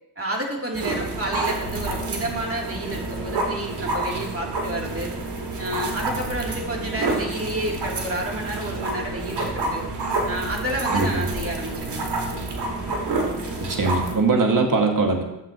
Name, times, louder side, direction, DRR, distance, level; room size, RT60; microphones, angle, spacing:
voice 1, 0.2-5.1 5.6-9.8 10.3-12.1, right 1 dB, 35° right, -1 dB, 3.0 m, -30 dB
sound 1, 0.7-14.1, right 2 dB, 70° right, 2.2 m, -28 dB
voice 2, 13.7-15.2, right 3 dB, 50° right, 3 dB, 1.9 m, -21 dB
13.0 x 7.5 x 3.0 m, 0.93 s
supercardioid pair, 45°, 42 cm